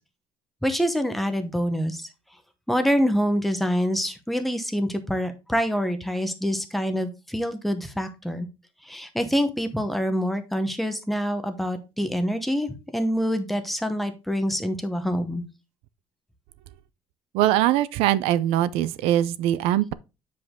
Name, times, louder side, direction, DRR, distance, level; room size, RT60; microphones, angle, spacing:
voice 1, 0.6-2.1 2.7-8.5 8.8-15.4, equal, ahead, 0.8 m, -26 dB
voice 2, 17.3-19.9, right 13 dB, 85° right, 0.5 m, -22 dB
8.2 x 5.1 x 3.7 m
cardioid pair, 170°, 10 cm